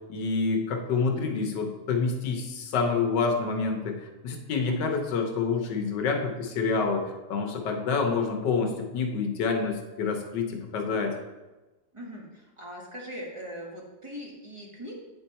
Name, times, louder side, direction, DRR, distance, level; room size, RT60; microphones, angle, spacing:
voice 1, 0.1-3.9 4.2-11.1, left 4 dB, 80° left, 3 dB, 1.5 m, -27 dB
voice 2, 11.9-14.9, equal, 20° right, -2 dB, 1.2 m, -40 dB
8.8 x 4.6 x 4.2 m, 1.1 s
omnidirectional pair, 1.9 m